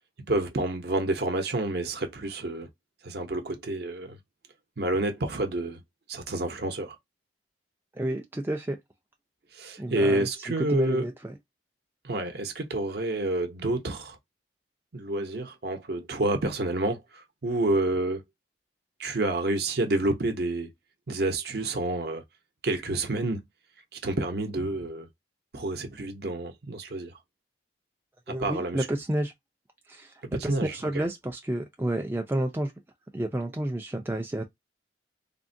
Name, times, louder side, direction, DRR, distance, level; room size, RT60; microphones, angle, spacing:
voice 1, 0.3-2.7 3.0-4.2 4.8-5.8 6.1-7.0 9.5-11.1 12.0-14.2 14.9-18.2 19.0-20.7 21.1-22.2 22.6-23.4 23.9-25.1 25.5-27.1 28.3-28.9 30.3-30.7, right 2 dB, 60° right, 0.7 m, -29 dB
voice 2, 7.9-8.8 9.8-10.3 10.6-11.3 28.3-29.3 29.9-30.1 30.4-32.7 33.1-34.4, right 1 dB, 10° right, 0.3 m, -30 dB
3.6 x 2.1 x 2.6 m
head